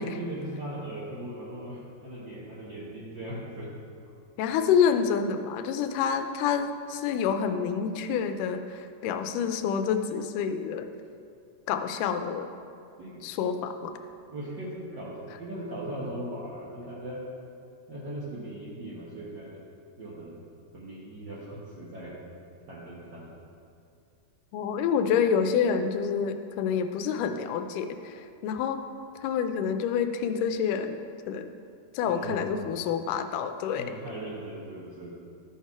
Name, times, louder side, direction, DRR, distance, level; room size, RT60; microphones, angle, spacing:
voice 1, 0.0-3.8 13.0-13.2 14.3-17.2 17.9-19.6 20.0-20.3 20.7-22.2 22.7-23.3 32.0-32.5 33.7-35.2, right 1 dB, 75° right, -8 dB, 1.0 m, -38 dB
voice 2, 4.4-10.9 11.7-12.5 13.2-13.9 24.5-28.8 29.2-31.0 31.3-31.5 32.0-33.9, left 7 dB, 85° left, 8 dB, 2.1 m, -28 dB
13.0 x 4.4 x 4.7 m, 2.5 s
omnidirectional pair, 3.7 m